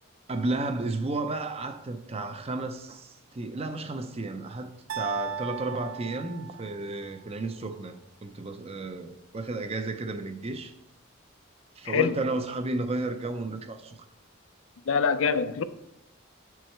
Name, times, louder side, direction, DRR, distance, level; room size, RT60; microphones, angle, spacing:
voice 1, 0.3-4.7 4.9-10.7 11.8-13.9, right 2 dB, 30° right, 0.5 m, -32 dB
sound 1, 4.9-7.0, right 8 dB, 75° right, 0.5 m, -37 dB
voice 2, 11.9-12.2 14.9-15.6, left 6 dB, 75° left, 0.4 m, -24 dB
7.3 x 4.7 x 4.5 m
head